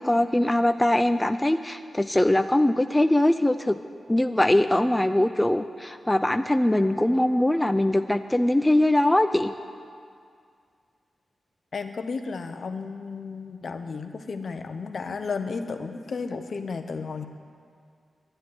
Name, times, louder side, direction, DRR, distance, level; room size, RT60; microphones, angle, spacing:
voice 1, 0.0-3.8 4.1-9.5, left 1 dB, 10° left, 9 dB, 0.5 m, -22 dB
voice 2, 11.7-17.3, left 4 dB, 65° left, 7 dB, 1.0 m, -33 dB
11.5 x 10.5 x 9.6 m, 2.2 s
cardioid pair, 75°, 0 cm